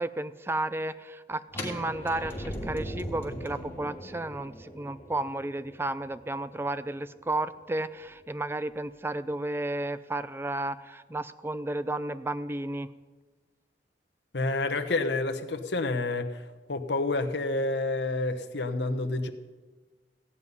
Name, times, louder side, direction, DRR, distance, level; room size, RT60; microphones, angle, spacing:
voice 1, 0.0-12.9, right 2 dB, 15° right, 14 dB, 0.4 m, -33 dB
sound 1, 1.5-7.3, equal, 15° left, 2.3 m, -39 dB
voice 2, 14.3-19.3, left 2 dB, 70° left, 7 dB, 1.0 m, -29 dB
15.5 x 5.5 x 9.6 m, 1.3 s
head